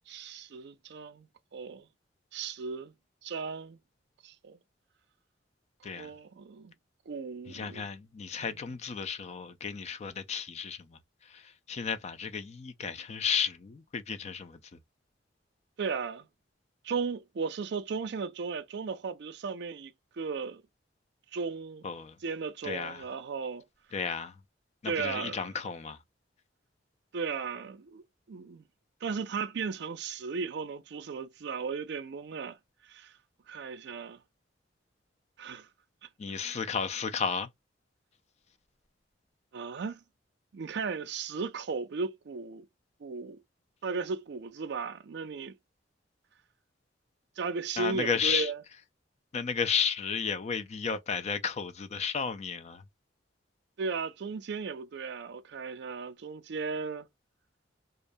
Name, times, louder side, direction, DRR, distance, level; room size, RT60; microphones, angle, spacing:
voice 1, 0.1-1.3 1.5-1.9 2.3-2.9 3.2-3.8 4.2-4.6 6.0-6.7 7.1-7.8 8.4-8.6 15.8-16.3 16.8-20.6 21.3-21.9 22.2-23.6 24.8-25.5 27.1-28.0 28.3-28.6 29.0-32.6 32.9-33.1 33.5-34.2 35.4-35.7 36.3-36.7 39.5-40.0 40.5-42.7 43.0-43.4 43.8-45.5 47.4-48.6 53.8-57.1, right 5 dB, 65° right, 0.4 m, -36 dB
voice 2, 7.5-10.8 11.7-14.6 21.8-22.1 22.6-23.0 23.9-24.3 24.8-26.0 36.2-37.5 47.8-48.5 49.3-52.8, left 6 dB, 35° left, 0.4 m, -33 dB
2.4 x 2.2 x 2.5 m
head